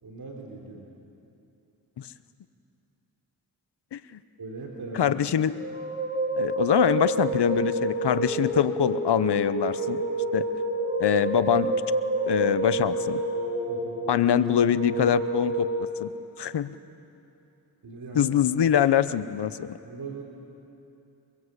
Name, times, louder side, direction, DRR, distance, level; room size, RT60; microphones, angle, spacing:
voice 1, 0.0-0.9 4.4-5.2 13.7-14.1 17.8-18.4 19.8-20.2, right 3 dB, 60° right, -1 dB, 3.6 m, -39 dB
voice 2, 4.9-5.5 6.4-10.0 10.3-10.5 11.0-11.7 12.2-13.2 14.1-15.7 16.0-16.1 16.4-16.7 18.1-19.8, left 9 dB, 75° left, 14 dB, 0.9 m, -24 dB
sound 1, 5.6-15.8, right 2 dB, 20° right, 4.2 m, -28 dB
25.0 x 22.0 x 8.2 m, 2.8 s
cardioid pair, 65°, 41 cm